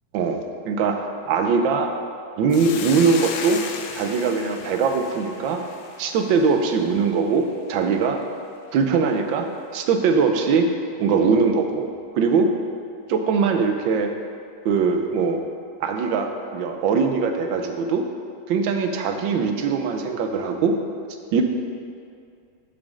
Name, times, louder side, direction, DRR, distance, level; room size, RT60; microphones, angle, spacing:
voice 1, 0.1-1.9 2.4-3.6 3.9-5.6 6.0-8.2 8.7-10.7 11.0-11.9 12.2-12.5 13.1-14.1 14.6-15.4 15.8-18.0 18.5-20.8 21.3-21.4, right 5 dB, 75° right, 5 dB, 1.4 m, -21 dB
Hiss, 2.5-7.0, left 6 dB, 75° left, 1.4 m, -35 dB
6.2 x 6.0 x 6.2 m, 2.3 s
omnidirectional pair, 2.2 m